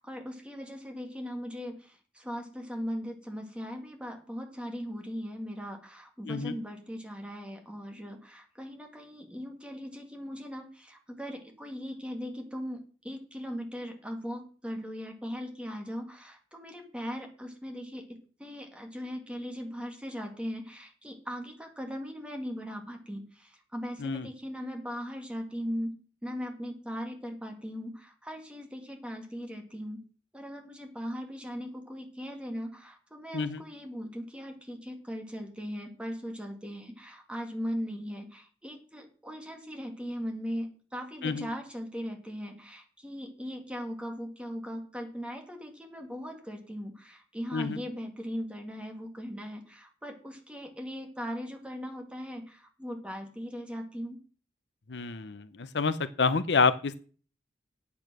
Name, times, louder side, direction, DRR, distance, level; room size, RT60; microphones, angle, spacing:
voice 1, 0.0-30.0 30.3-54.2, equal, 5° right, 3 dB, 2.1 m, -39 dB
voice 2, 54.9-57.0, left 4 dB, 70° left, 13 dB, 0.7 m, -28 dB
8.7 x 8.4 x 6.2 m, 0.39 s
head